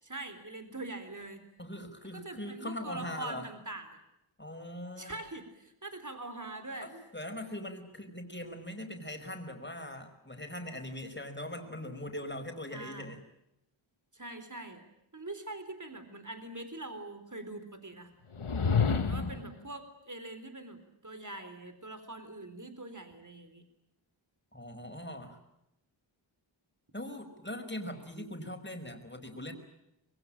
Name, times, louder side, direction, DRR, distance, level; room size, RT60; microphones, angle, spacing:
voice 1, 0.0-1.5 2.1-4.0 5.0-6.9 12.7-13.1 14.1-14.8 15.1-18.1 19.1-23.6, right 2 dB, 35° right, 9 dB, 4.0 m, -43 dB
voice 2, 1.6-3.5 4.4-5.2 6.8-13.2 18.8-19.4 24.5-25.4 26.9-29.5, left 1 dB, 20° left, 5 dB, 5.3 m, -41 dB
sound 1, 18.3-19.5, left 5 dB, 80° left, 1.4 m, -28 dB
26.0 x 22.0 x 8.8 m, 0.85 s
wide cardioid pair, 45°, 49 cm